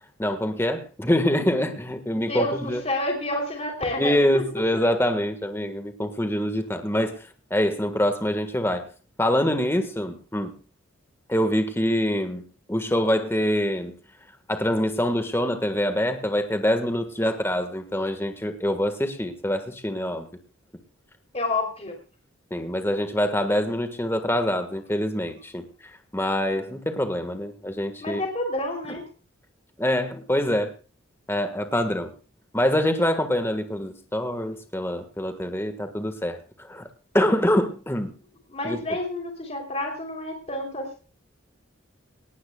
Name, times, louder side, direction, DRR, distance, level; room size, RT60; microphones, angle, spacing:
voice 1, 0.2-2.8 4.0-8.9 9.2-10.5 11.3-12.4 12.7-13.9 14.5-20.3 22.5-25.7 26.1-28.2 29.8-30.7 31.3-32.1 32.5-36.9 37.1-38.1 38.6-38.8, equal, 10° left, 7 dB, 1.5 m, -25 dB
voice 2, 2.1-4.6 21.3-22.0 22.6-22.7 28.0-29.0 38.5-41.0, left 1 dB, 30° left, 2 dB, 3.3 m, -29 dB
19.0 x 18.5 x 2.3 m, 0.36 s
head